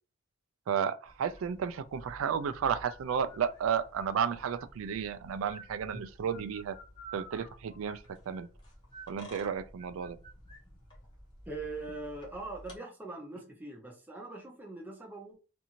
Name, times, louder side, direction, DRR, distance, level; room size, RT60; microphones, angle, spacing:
voice 1, 0.7-6.8 7.1-8.5 9.1-10.2, right 7 dB, 85° right, 0.3 m, -33 dB
sound 1, 1.0-12.8, right 1 dB, 20° left, 0.8 m, -52 dB
voice 2, 11.5-15.4, right 2 dB, 10° right, 0.6 m, -42 dB
2.6 x 2.5 x 2.8 m
head